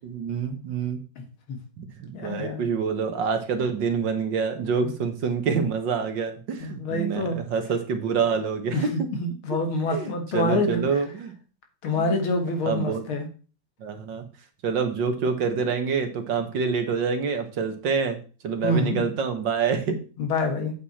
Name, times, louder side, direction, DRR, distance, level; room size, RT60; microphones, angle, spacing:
voice 1, 0.0-1.0 1.8-9.1 9.5-9.6 9.9-11.3 12.0-12.2 12.7-13.1 13.8-14.3 14.6-18.2 18.4-20.0, right 5 dB, 65° right, 7 dB, 2.0 m, -27 dB
voice 2, 1.2-1.6 2.1-2.6 4.8-4.9 6.6-7.4 8.7-10.8 11.8-13.3 16.4-16.5 18.6-19.1 20.2-20.7, left 2 dB, 85° left, 5 dB, 2.6 m, -27 dB
8.1 x 7.8 x 4.2 m, 0.36 s
omnidirectional pair, 2.2 m